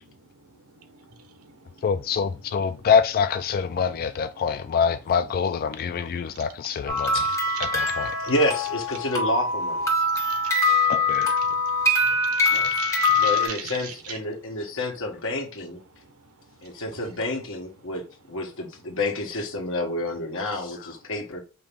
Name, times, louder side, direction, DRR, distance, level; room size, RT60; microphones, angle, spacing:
voice 1, 0.1-1.8 2.7-2.9 6.2-6.5 7.0-7.2 7.5-7.9 9.9-14.2 15.9-17.1, right 7 dB, 90° right, 1.0 m, -42 dB
voice 2, 1.8-7.3 7.6-8.1 10.9-11.4 20.8-20.9, left 6 dB, 45° left, 0.3 m, -25 dB
sound 1, 6.9-13.5, left 2 dB, 15° left, 1.7 m, -23 dB
voice 3, 8.2-10.1 12.5-12.7 13.2-15.8 16.6-21.4, left 1 dB, 65° left, 1.5 m, -29 dB
5.2 x 2.9 x 3.5 m
head